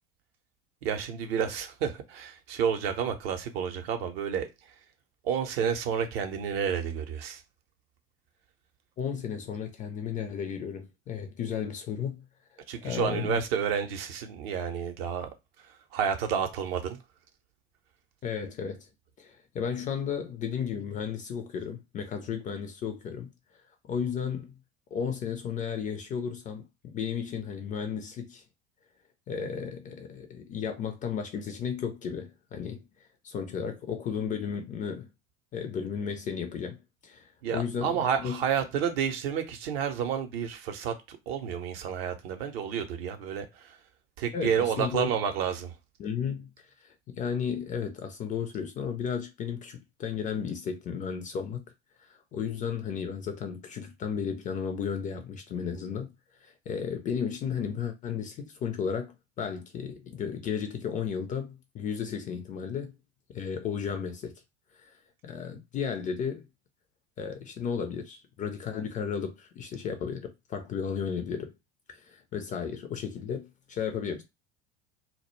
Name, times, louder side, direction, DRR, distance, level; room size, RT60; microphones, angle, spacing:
voice 1, 0.8-4.5 5.2-7.4 12.7-15.3 15.9-17.0 37.4-43.7 44.2-45.7, right 7 dB, 60° right, 0.6 m, -30 dB
voice 2, 9.0-12.2 12.8-13.4 18.2-18.9 19.2-23.3 23.9-24.5 24.9-28.4 29.3-32.8 33.2-35.1 35.5-38.4 44.3-45.1 46.0-46.5 46.8-51.6 52.0-56.1 56.4-62.9 63.3-64.3 64.7-64.9 65.2-66.5 67.2-71.5 71.9-74.2, left 7 dB, 25° left, 0.3 m, -34 dB
2.1 x 2.0 x 3.0 m
figure-of-eight pair, 70°, 36 cm